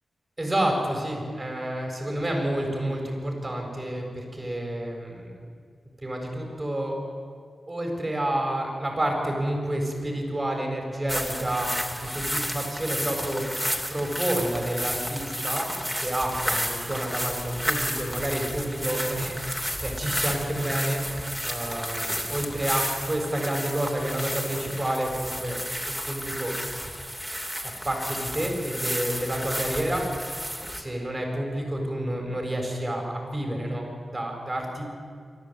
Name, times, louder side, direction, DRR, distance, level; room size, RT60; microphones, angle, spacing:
voice 1, 0.4-5.4 6.0-7.0 7.7-13.6 13.9-15.7 16.0-19.4 19.8-21.0 21.4-25.6 26.0-26.6 27.6-30.0 30.7-34.8, right 1 dB, 30° right, 1 dB, 7.3 m, -29 dB
sound 1, 11.1-30.8, equal, 5° right, 3.0 m, -32 dB
27.5 x 12.5 x 9.3 m, 2.1 s
cardioid pair, 45°, 0 cm